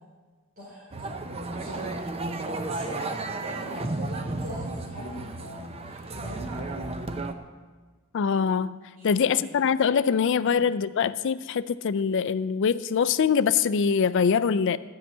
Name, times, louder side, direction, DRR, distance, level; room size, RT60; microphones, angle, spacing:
voice 1, 0.6-1.1 1.5-1.9 2.7-6.9 8.9-9.5 10.4-10.6, equal, 40° right, -9 dB, 4.1 m, -41 dB
sound 1, 0.9-7.3, right 2 dB, 25° right, 0.6 m, -33 dB
voice 2, 8.1-8.8 9.0-14.8, left 6 dB, 55° left, 15 dB, 0.4 m, -23 dB
13.0 x 5.7 x 8.2 m, 1.4 s
head